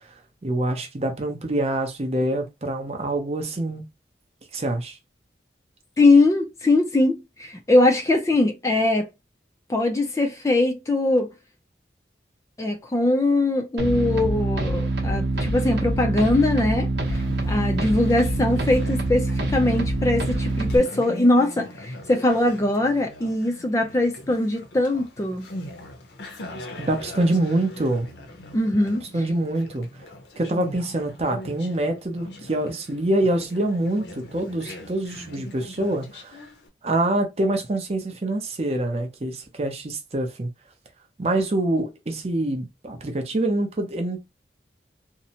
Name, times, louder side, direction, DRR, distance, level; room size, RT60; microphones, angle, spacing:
voice 1, 0.4-3.8 4.5-5.0 26.8-28.1 29.1-29.9 30.4-36.4 36.8-40.5 41.2-44.2, right 1 dB, 35° right, 0.6 m, -25 dB
voice 2, 6.0-9.1 9.7-11.3 12.6-17.2 17.5-25.5 28.5-29.0, left 2 dB, 15° left, 0.3 m, -21 dB
sound 1, 13.8-20.8, right 2 dB, 80° right, 0.7 m, -25 dB
Conversation, 17.0-36.7, left 1 dB, 75° left, 0.7 m, -41 dB
2.7 x 2.0 x 2.8 m
head